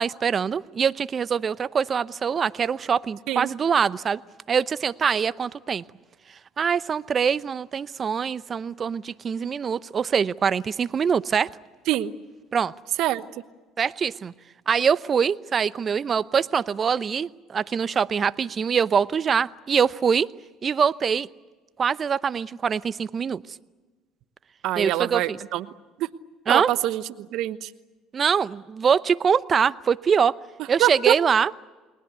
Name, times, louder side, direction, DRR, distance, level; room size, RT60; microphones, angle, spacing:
voice 1, 0.0-4.2 4.5-5.8 6.6-11.5 12.5-12.7 13.8-14.3 14.7-20.3 20.6-21.3 21.8-23.4 24.8-25.4 26.5-26.7 28.1-30.4 30.7-31.5, right 6 dB, 40° right, 17 dB, 0.7 m, -23 dB
voice 2, 24.6-25.7 26.0-26.1 26.5-27.7 30.8-31.1, right 14 dB, 65° right, 13 dB, 1.1 m, -24 dB
30.0 x 20.5 x 8.2 m, 1.3 s
hypercardioid pair, 70°, 0 cm